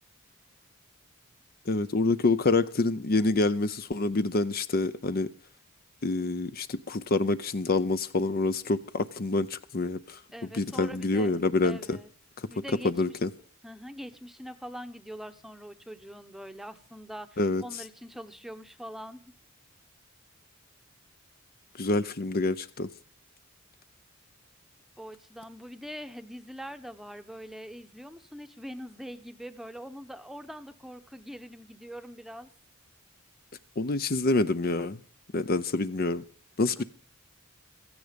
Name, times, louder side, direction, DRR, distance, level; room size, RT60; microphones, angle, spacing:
voice 1, 1.7-5.3 6.0-10.2 10.5-12.0 12.4-12.5 12.8-13.3 17.4-17.6 21.8-22.9 33.8-35.0 35.3-36.2 36.6-36.8, left 3 dB, 45° left, 0.7 m, -27 dB
voice 2, 10.3-11.3 11.6-12.1 12.5-13.2 13.6-19.3 25.0-32.5 36.8-36.9, equal, ahead, 0.9 m, -43 dB
16.0 x 14.5 x 5.2 m
head